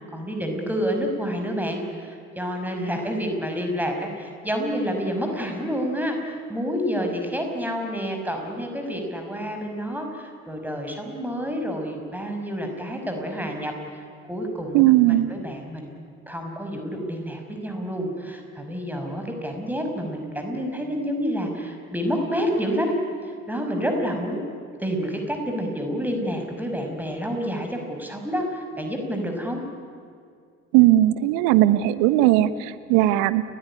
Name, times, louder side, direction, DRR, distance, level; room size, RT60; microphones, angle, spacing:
voice 1, 0.1-13.7 14.3-14.8 15.1-15.9 16.3-22.9 23.2-24.4 24.8-29.6, equal, 5° right, 3 dB, 5.8 m, -28 dB
voice 2, 14.7-15.2 30.7-33.4, right 15 dB, 60° right, 14 dB, 1.2 m, -18 dB
30.0 x 15.5 x 9.9 m, 2.3 s
figure-of-eight pair, 55°, 38 cm